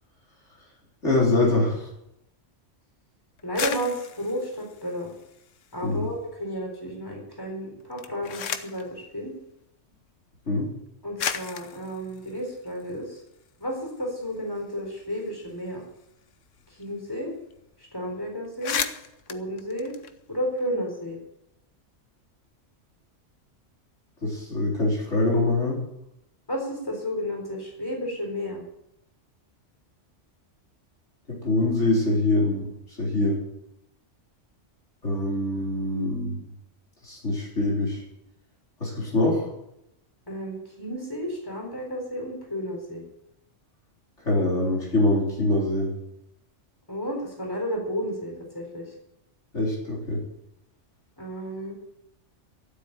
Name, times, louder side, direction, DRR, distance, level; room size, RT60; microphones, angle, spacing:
voice 1, 1.0-1.8 5.8-6.1 10.5-10.7 24.2-25.8 31.3-32.7 33.0-33.4 35.0-36.4 37.0-38.0 38.8-39.5 44.3-45.9 49.5-50.2, left 2 dB, 70° left, -3 dB, 4.5 m, -24 dB
sound 1, 3.4-6.0 6.3-7.0 7.8-8.9 9.9-10.0 10.8-10.9 11.2-13.5 13.9-14.0 14.2-16.8 17.1-17.2 17.5-17.8 18.1-18.2 18.4-20.7, left 7 dB, 90° left, 1.2 m, -35 dB
voice 2, 3.4-5.1 5.7-9.3 11.0-13.2 13.6-15.8 16.8-17.3 17.9-18.8 19.3-19.9 20.3-21.2 26.5-28.6 40.3-43.0 46.9-48.9 51.2-51.7, equal, 15° left, 0 dB, 4.1 m, -32 dB
13.0 x 7.8 x 9.0 m, 0.82 s
omnidirectional pair, 1.3 m